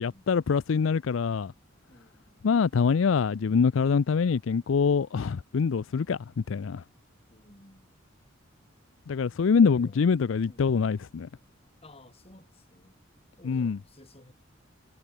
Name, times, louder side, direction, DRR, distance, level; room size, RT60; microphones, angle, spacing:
voice 1, 0.0-1.5 2.4-6.8 9.1-11.3 13.4-13.8, left 5 dB, 80° left, 0.4 m, -25 dB
voice 2, 1.9-2.5 7.3-7.9 9.4-10.1 10.4-10.8 11.8-13.0 13.4-14.3, left 1 dB, 30° left, 4.7 m, -54 dB
head